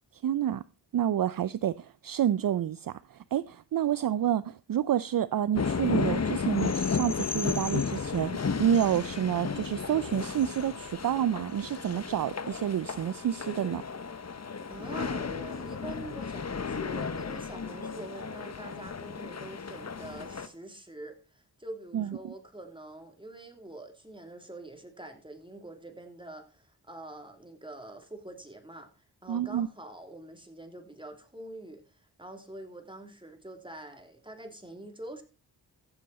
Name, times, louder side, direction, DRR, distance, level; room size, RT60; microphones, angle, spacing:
voice 1, 0.1-0.6 0.9-13.8 21.9-22.3 29.3-29.7, right 10 dB, 55° right, 0.5 m, -29 dB
sound 1, 5.5-20.5, left 5 dB, 40° left, 1.0 m, -33 dB
voice 2, 14.7-35.2, right 1 dB, 10° right, 3.1 m, -45 dB
14.5 x 7.7 x 4.2 m
cardioid pair, 50°, 42 cm